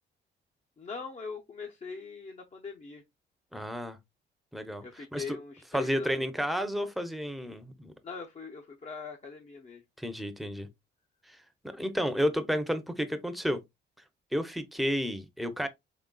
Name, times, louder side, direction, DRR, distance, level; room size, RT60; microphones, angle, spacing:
voice 1, 0.8-3.0 4.8-6.2 8.0-9.8, left 5 dB, 35° left, 0.7 m, -41 dB
voice 2, 3.5-4.0 4.5-5.4 5.7-7.9 10.0-10.7 11.3-11.4 11.6-13.6 14.3-15.7, equal, ahead, 0.7 m, -31 dB
3.8 x 3.5 x 2.2 m
cardioid pair, 90°, 20 cm